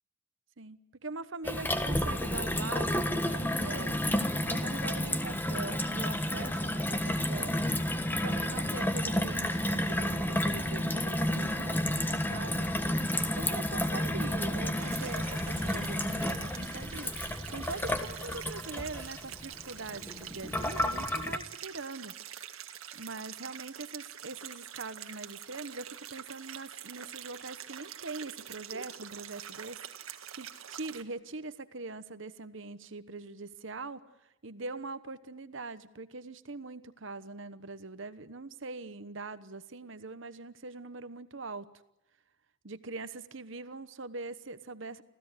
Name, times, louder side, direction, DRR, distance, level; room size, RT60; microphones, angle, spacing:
voice 1, 0.6-4.1 4.5-7.7 8.1-12.7 13.2-17.2 17.5-22.2 22.9-29.8 30.3-41.7 42.6-45.0, right 3 dB, 65° right, 13 dB, 1.1 m, -42 dB
Gurgling / Water tap faucet / Sink (filling or washing), 1.5-21.4, left 1 dB, 10° left, 1.4 m, -31 dB
sound 1, 14.8-31.0, right 9 dB, 85° right, 1.8 m, -45 dB
26.5 x 16.0 x 9.7 m, 0.88 s
head